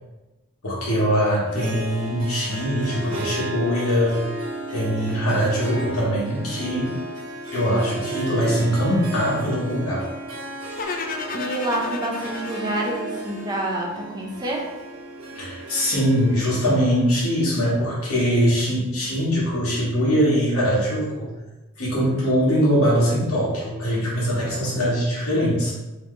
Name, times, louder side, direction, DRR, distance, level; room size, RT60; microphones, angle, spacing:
voice 1, 0.6-4.2 4.7-6.9 7.5-10.1 15.3-21.3 21.8-25.7, equal, 80° left, -6 dB, 1.2 m, -22 dB
Harp, 1.5-18.0, right 1 dB, 85° right, 1.0 m, -34 dB
sound 1, 10.8-13.9, left 4 dB, 40° left, 0.3 m, -33 dB
voice 2, 11.3-14.7, right 1 dB, 20° right, -1 dB, 0.6 m, -27 dB
3.7 x 3.0 x 3.1 m, 1.1 s
head